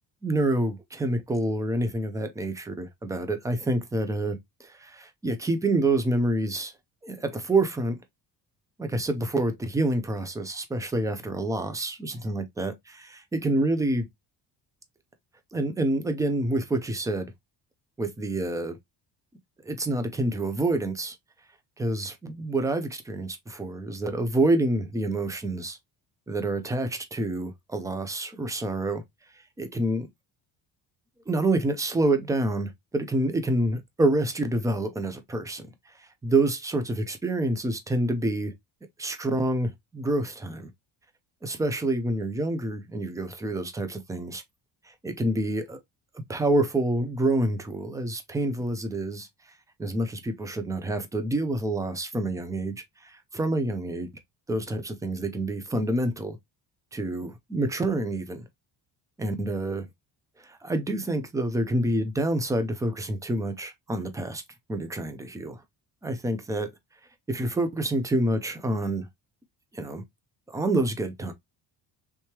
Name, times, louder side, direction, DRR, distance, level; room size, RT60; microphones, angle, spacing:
voice 1, 0.2-6.7 7.0-8.0 8.8-14.1 15.5-17.3 18.0-18.8 19.6-21.2 21.8-25.8 26.3-29.0 29.6-30.1 31.3-35.6 36.2-38.5 39.0-40.7 41.4-44.4 45.0-45.8 46.3-49.3 49.8-54.1 54.5-56.4 56.9-58.4 59.2-59.9 60.4-64.4 64.7-65.6 66.0-66.7 67.3-69.1 69.7-70.0 70.5-71.3, right 2 dB, 10° right, 0.4 m, -27 dB
3.4 x 3.1 x 2.9 m
cardioid pair, 155°, 42 cm